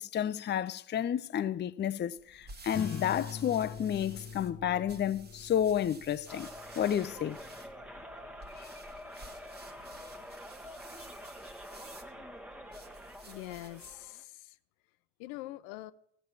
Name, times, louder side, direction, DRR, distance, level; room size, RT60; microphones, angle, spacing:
voice 1, 0.0-6.5 6.8-7.4 8.6-8.7, left 10 dB, 30° left, 0.5 m, -31 dB
sound 1, 2.2-14.1, right 2 dB, 25° right, 1.4 m, -53 dB
sound 2, 2.7-7.8, left 7 dB, 45° left, 1.1 m, -44 dB
sound 3, 6.3-14.2, equal, 5° right, 1.2 m, -47 dB
voice 2, 13.3-14.5 15.2-15.9, left 17 dB, 75° left, 0.6 m, -44 dB
14.0 x 6.1 x 7.2 m
hypercardioid pair, 55°, 40 cm